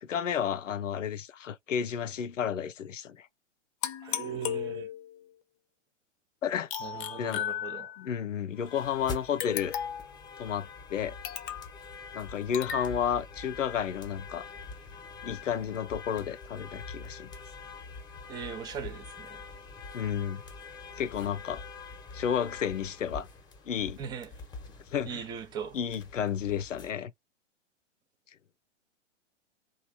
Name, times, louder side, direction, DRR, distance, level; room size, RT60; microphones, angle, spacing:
voice 1, 0.0-3.3 6.4-6.7 7.2-7.4 8.0-9.7 10.4-11.2 12.1-14.5 15.2-17.3 19.9-20.4 21.0-21.6 22.1-23.3 23.7-24.0 24.9-25.2 25.7-27.1, left 8 dB, 85° left, 0.6 m, -32 dB
sound 1, 3.8-5.2 6.7-8.1 9.4-10.2 11.2-11.8 12.5-12.9, left 10 dB, 45° left, 0.7 m, -35 dB
voice 2, 4.0-4.9 6.8-7.9 18.3-19.4 24.0-24.3 25.0-25.8, right 7 dB, 10° right, 0.4 m, -39 dB
sound 2, 8.5-26.9, left 4 dB, 10° left, 0.9 m, -45 dB
3.0 x 2.4 x 3.3 m
hypercardioid pair, 115°, 37 cm